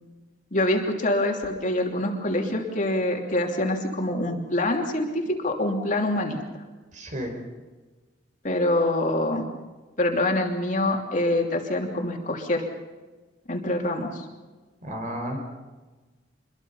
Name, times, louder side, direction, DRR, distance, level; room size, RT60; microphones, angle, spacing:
voice 1, 0.5-6.4 8.4-9.5 10.0-12.7 13.5-14.2, left 1 dB, 45° left, 1 dB, 2.9 m, -25 dB
voice 2, 6.9-7.3 14.8-15.4, equal, 45° right, 4 dB, 4.8 m, -32 dB
26.0 x 22.5 x 5.7 m, 1.3 s
head